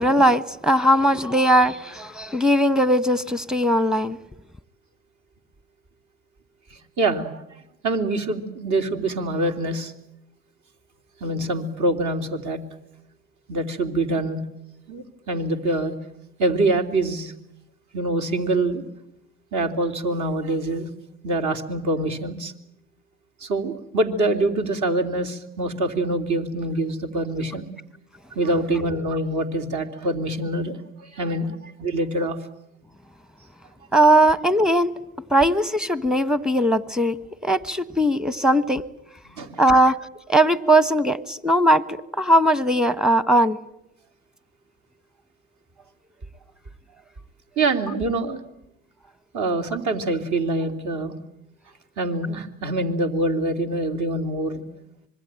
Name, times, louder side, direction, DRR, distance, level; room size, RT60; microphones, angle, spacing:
voice 1, 0.0-4.2 33.9-34.9 35.3-37.2 37.4-38.8 39.6-40.0 40.3-43.6, right 1 dB, ahead, 16 dB, 1.3 m, -19 dB
voice 2, 7.0-7.3 7.8-9.9 11.2-12.6 13.5-14.4 14.9-15.9 16.4-17.3 17.9-18.8 19.5-20.9 21.2-22.5 23.4-27.7 28.4-32.4 39.3-39.6 47.6-48.4 49.3-51.2 52.0-54.6, right 2 dB, 50° right, 7 dB, 3.5 m, -25 dB
25.5 x 22.0 x 9.1 m, 0.82 s
hypercardioid pair, 80°, 39 cm